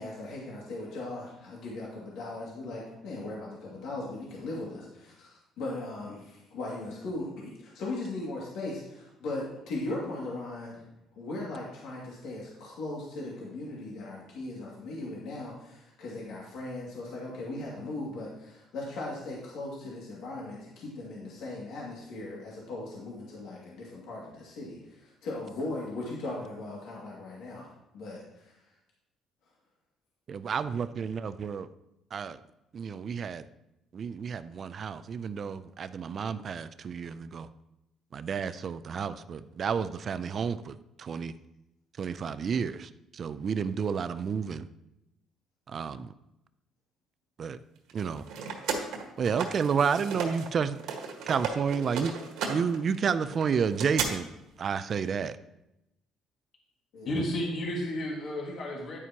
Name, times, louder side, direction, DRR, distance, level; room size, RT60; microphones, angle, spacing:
voice 1, 0.0-10.8 11.2-27.7 27.9-28.6 56.9-57.1, left 2 dB, 75° left, -5 dB, 2.3 m, -38 dB
voice 2, 30.3-31.7 32.1-32.4 32.7-33.4 33.9-37.5 38.1-41.3 42.0-44.7 45.7-46.1 47.4-47.6 47.9-48.2 49.2-50.8 51.3-52.1 52.5-54.3 54.6-55.4, right 6 dB, 40° right, 14 dB, 0.4 m, -31 dB
sound 1, 47.9-50.5 50.8-54.1, right 6 dB, 85° right, 1.6 m, -35 dB
voice 3, 57.1-59.0, left 1 dB, 50° left, -2 dB, 2.0 m, -32 dB
9.9 x 9.2 x 2.9 m, 0.90 s
cardioid pair, 135°, 0 cm